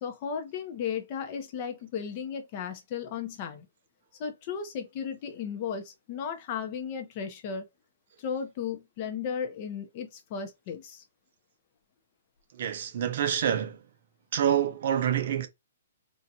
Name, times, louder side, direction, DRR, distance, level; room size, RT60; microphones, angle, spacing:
voice 1, 0.0-3.7 4.2-7.7 8.2-11.0, left 7 dB, 30° left, 0.7 m, -35 dB
voice 2, 12.5-13.8 14.3-15.5, right 9 dB, 45° right, 0.6 m, -27 dB
4.1 x 2.4 x 2.7 m
hypercardioid pair, 165°, 0 cm